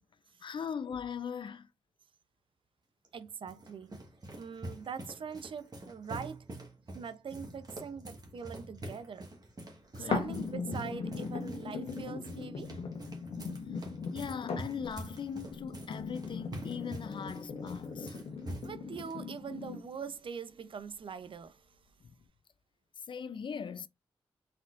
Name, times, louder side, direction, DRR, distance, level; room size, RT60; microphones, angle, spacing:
voice 1, 0.4-1.7 9.9-10.5 14.1-18.2 23.1-23.9, left 7 dB, 55° left, 0.4 m, -40 dB
sound 1, 3.0-19.2, right 1 dB, 40° right, 1.5 m, -46 dB
voice 2, 3.1-4.0 4.4-6.5 6.9-9.3 10.0-12.7 17.9-18.0 18.3-21.7, right 6 dB, 60° right, 0.6 m, -43 dB
sound 2, 10.1-20.1 20.7-20.8, left 5 dB, 85° left, 1.0 m, -39 dB
4.2 x 3.9 x 2.5 m
cardioid pair, 60°, 10 cm